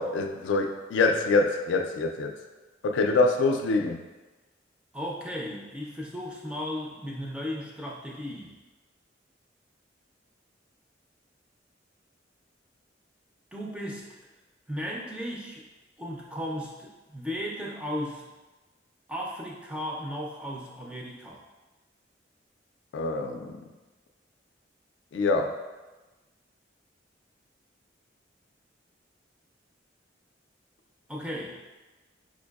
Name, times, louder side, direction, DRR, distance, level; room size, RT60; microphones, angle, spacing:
voice 1, 0.0-2.3 2.8-4.0 22.9-23.6 25.1-25.6, left 3 dB, 85° left, 5 dB, 0.3 m, -25 dB
voice 2, 4.9-8.5 13.5-14.2 14.7-15.6 16.0-18.3 19.1-21.4 31.1-31.6, equal, 5° right, -3 dB, 0.4 m, -35 dB
4.5 x 2.6 x 2.3 m, 1.2 s
head